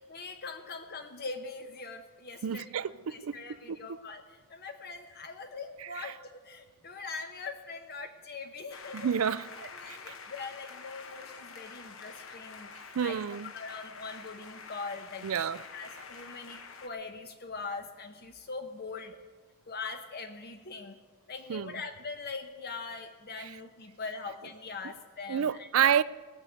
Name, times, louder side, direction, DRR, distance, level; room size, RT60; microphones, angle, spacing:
voice 1, 0.1-9.1 9.6-12.7 13.0-13.2 13.5-19.2 19.7-21.0 21.3-25.9, left 4 dB, 45° left, 0.8 m, -42 dB
voice 2, 2.4-3.4 3.7-4.0 6.0-6.1 8.9-10.1 12.9-13.5 15.2-15.6 21.5-21.8 23.4-23.5 25.3-26.0, right 8 dB, 75° right, 0.4 m, -30 dB
sound 1, 8.7-16.9, left 5 dB, 65° left, 1.1 m, -47 dB
18.0 x 6.6 x 9.1 m
head